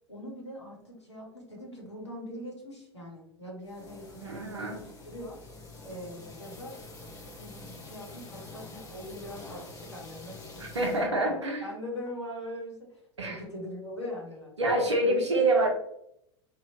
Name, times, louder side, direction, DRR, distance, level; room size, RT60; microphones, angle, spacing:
voice 1, 0.1-5.4 5.8-14.5 15.0-15.5, left 1 dB, 80° left, -1 dB, 0.9 m, -42 dB
sound 1, 3.6-11.1, left 3 dB, 25° left, 0.7 m, -47 dB
voice 2, 4.2-4.8 10.6-11.6 13.2-13.4 14.6-15.7, right 2 dB, 80° right, 1 dB, 0.7 m, -26 dB
2.8 x 2.4 x 2.9 m, 0.76 s
figure-of-eight pair, 85°, 15 cm